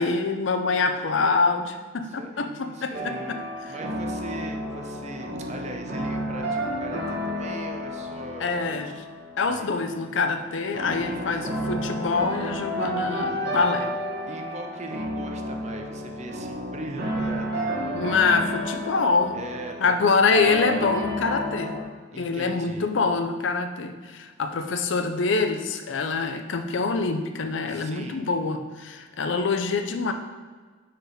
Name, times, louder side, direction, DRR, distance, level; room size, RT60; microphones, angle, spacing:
voice 1, 0.0-3.4 5.3-5.5 8.4-8.9 9.4-13.9 17.9-19.4 19.8-21.8 22.2-30.1, left 4 dB, 70° left, 6 dB, 0.5 m, -25 dB
voice 2, 2.0-8.7 9.4-9.7 10.9-11.5 14.3-18.2 19.3-20.0 22.1-22.9 27.7-28.2, right 2 dB, 35° right, 3 dB, 0.6 m, -40 dB
sound 1, 2.9-21.8, equal, 55° right, 1.3 m, -31 dB
4.6 x 4.6 x 5.0 m, 1.4 s
head